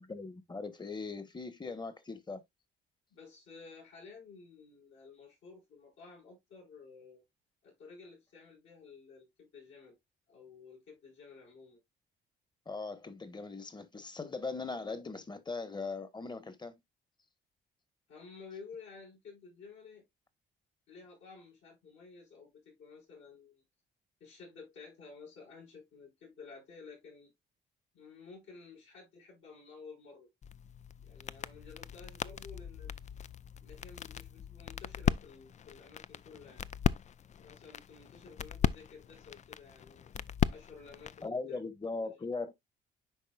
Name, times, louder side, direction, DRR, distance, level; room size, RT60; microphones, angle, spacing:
voice 1, 0.0-2.4 12.7-16.7 41.2-42.5, left 3 dB, 20° left, 1.3 m, -39 dB
voice 2, 3.1-7.2 7.6-10.0 10.3-11.8 18.1-20.0 20.9-23.6 24.2-27.3 27.9-30.3 31.0-32.9 33.6-36.7 37.4-41.6 42.0-42.2, left 4 dB, 75° left, 5.6 m, -53 dB
sound 1, 30.4-41.3, left 8 dB, 35° left, 0.4 m, -37 dB
10.0 x 4.3 x 2.4 m
cardioid pair, 90°, 20 cm